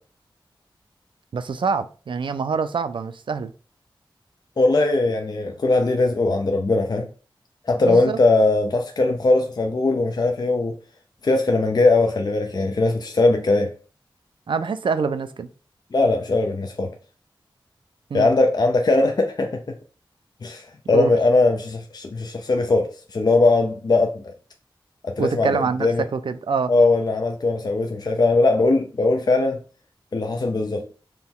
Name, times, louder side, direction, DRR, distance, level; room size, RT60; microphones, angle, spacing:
voice 1, 1.3-3.5 7.8-8.2 14.5-15.5 18.1-18.3 20.9-21.1 25.2-26.7, right 5 dB, 70° right, 0.4 m, -25 dB
voice 2, 4.6-7.1 7.7-10.8 11.2-13.7 15.9-16.9 18.1-19.8 20.4-24.3 25.0-26.0 26.7-29.6 30.1-30.9, left 2 dB, 50° left, 0.4 m, -20 dB
4.3 x 2.2 x 3.6 m
wide cardioid pair, 55°, 9 cm